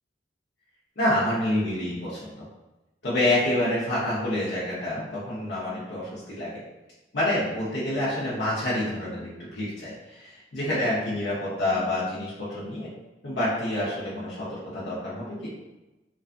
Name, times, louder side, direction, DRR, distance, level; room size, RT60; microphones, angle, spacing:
voice 1, 1.0-2.4 3.0-6.6 7.1-12.9 13.2-15.5, left 1 dB, 80° left, -8 dB, 0.8 m, -28 dB
2.4 x 2.3 x 2.4 m, 1.0 s
head